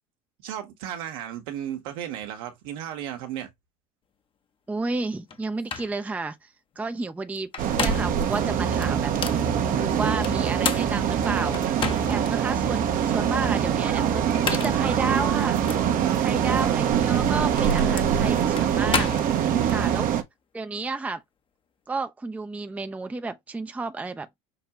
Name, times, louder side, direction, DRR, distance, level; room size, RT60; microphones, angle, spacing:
voice 1, 0.4-3.5 16.0-16.5 19.5-20.2, right 11 dB, 65° right, 1.2 m, -34 dB
voice 2, 4.7-9.1 9.7-15.6 15.9-19.1 19.7-20.1 20.5-21.2 21.9-24.3, right 3 dB, 5° right, 0.5 m, -32 dB
sound 1, 5.3-5.4 5.7-5.9 7.4-8.2 8.8-9.4 10.2-12.3 12.8-12.9 14.2-14.9 15.6-15.8 17.0-19.8, left 6 dB, 25° left, 0.8 m, -31 dB
sound 2, 7.6-20.2, right 8 dB, 45° right, 0.8 m, -24 dB
5.9 x 2.2 x 2.9 m
hypercardioid pair, 80°, 19 cm